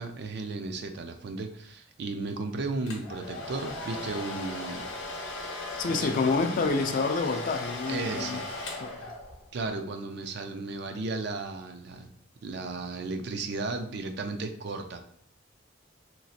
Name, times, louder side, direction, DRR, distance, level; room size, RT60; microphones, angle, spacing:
voice 1, 0.0-4.9 5.4-5.6 5.9-6.1 7.9-8.5 9.5-12.1 12.4-15.1, right 3 dB, 60° right, 0.4 m, -35 dB
Domestic sounds home sounds, 2.9-9.5, left 2 dB, 75° left, 0.7 m, -37 dB
voice 2, 5.8-8.4 8.8-9.0, left 4 dB, 45° left, 0.3 m, -28 dB
3.0 x 2.5 x 2.7 m
head